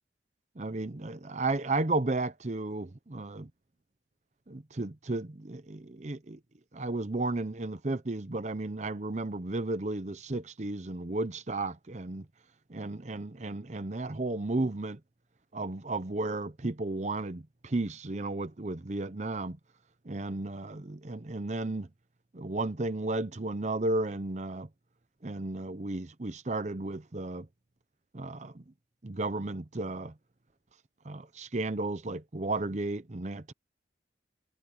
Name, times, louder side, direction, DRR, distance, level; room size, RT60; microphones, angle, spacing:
voice 1, 0.6-3.5 4.5-6.4 6.7-12.2 12.7-15.0 15.5-19.6 20.1-21.9 22.3-24.7 25.2-27.5 28.1-28.6 29.0-30.1 31.0-33.5, right 2 dB, 40° right, 0.8 m, -33 dB
head